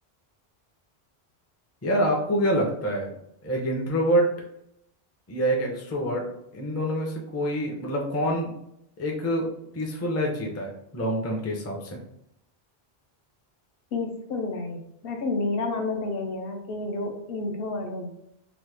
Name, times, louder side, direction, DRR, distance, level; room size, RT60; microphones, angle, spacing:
voice 1, 1.8-3.1 3.4-4.3 5.3-6.2 6.5-8.5 9.0-9.5 9.7-12.0, equal, 20° left, 0 dB, 0.4 m, -26 dB
voice 2, 13.9-18.1, left 3 dB, 70° left, 3 dB, 0.8 m, -30 dB
3.0 x 2.1 x 3.3 m, 0.78 s
omnidirectional pair, 1.1 m